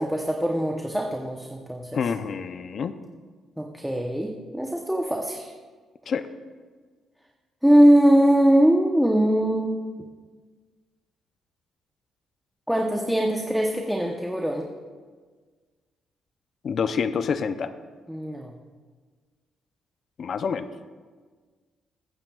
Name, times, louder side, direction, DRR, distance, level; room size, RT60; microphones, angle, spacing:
voice 1, 0.0-2.0 3.6-5.5 7.6-9.8 12.7-14.7 18.1-18.5, equal, ahead, 1 dB, 0.9 m, -21 dB
voice 2, 1.9-2.9 6.1-6.3 16.6-17.7 20.2-20.7, left 6 dB, 55° left, 11 dB, 0.5 m, -27 dB
21.5 x 8.8 x 2.4 m, 1.5 s
cardioid pair, 90°, 0 cm